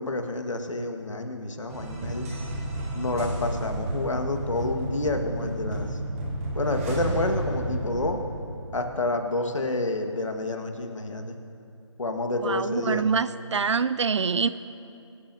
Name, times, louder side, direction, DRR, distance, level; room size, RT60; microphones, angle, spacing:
voice 1, 0.0-2.3 2.9-6.0 6.6-8.2 8.7-11.4 12.0-13.1, left 2 dB, 75° left, 4 dB, 1.6 m, -29 dB
sound 1, 1.7-9.2, right 1 dB, 30° right, 2.8 m, -32 dB
voice 2, 12.4-14.5, right 5 dB, 65° right, 14 dB, 0.4 m, -25 dB
25.0 x 8.7 x 2.7 m, 2.6 s
figure-of-eight pair, 160°, 16 cm